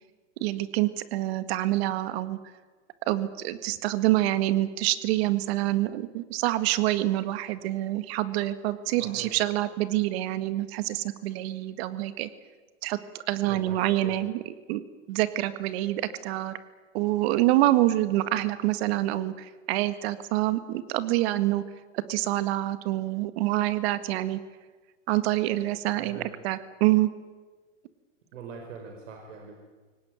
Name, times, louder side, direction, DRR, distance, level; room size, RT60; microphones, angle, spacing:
voice 1, 0.4-2.4 3.1-12.3 12.8-13.0 13.3-14.4 14.7-16.6 16.9-21.6 22.1-24.4 25.1-26.2 26.4-27.1, right 15 dB, 50° right, 12 dB, 1.8 m, -26 dB
voice 2, 9.0-9.4 13.5-14.2 25.9-26.3 28.3-29.7, right 5 dB, 70° right, 2 dB, 5.0 m, -43 dB
23.5 x 18.5 x 9.2 m, 1.4 s
hypercardioid pair, 130°, 39 cm